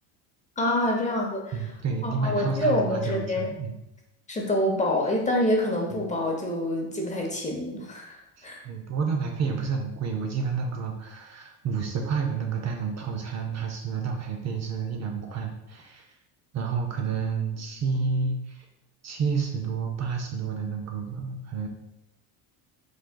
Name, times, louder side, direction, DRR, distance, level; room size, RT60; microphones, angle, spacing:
voice 1, 0.6-1.6 2.0-3.5 4.3-8.2 8.4-8.6, left 1 dB, 15° left, 0 dB, 0.7 m, -26 dB
voice 2, 1.5-3.7 8.4-16.1 16.5-18.7 19.0-21.7, right 5 dB, 40° right, 3 dB, 0.5 m, -30 dB
5.1 x 3.8 x 2.2 m, 0.89 s
cardioid pair, 125°, 44 cm